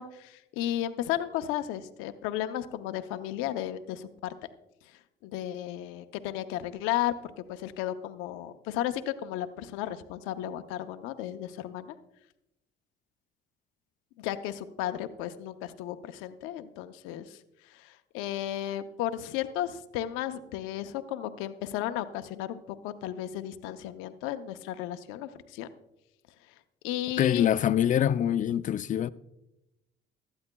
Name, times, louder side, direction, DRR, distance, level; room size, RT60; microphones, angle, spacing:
voice 1, 0.0-4.3 5.2-11.9 14.2-17.4 17.6-25.7 26.8-27.5, left 12 dB, 90° left, 0.7 m, -34 dB
voice 2, 27.2-29.1, left 10 dB, 40° left, 0.4 m, -25 dB
17.0 x 12.0 x 2.2 m
cardioid pair, 100°, 20 cm